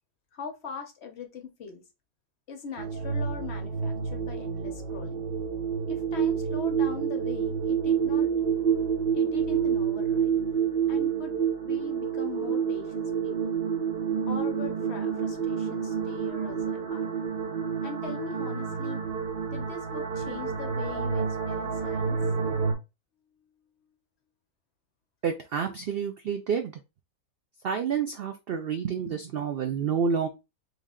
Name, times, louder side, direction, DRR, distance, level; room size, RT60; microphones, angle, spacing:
voice 1, 0.3-1.8 2.5-5.2 5.9-8.3 9.1-10.3 10.9-11.4 11.6-13.6 14.3-17.1 17.8-19.0 19.5-22.2, left 5 dB, 55° left, 0.9 m, -41 dB
sound 1, 2.8-22.7, right 6 dB, 50° right, 0.9 m, -28 dB
voice 2, 25.2-26.7 27.6-30.3, right 6 dB, 75° right, 0.5 m, -29 dB
3.4 x 3.2 x 3.6 m
omnidirectional pair, 1.6 m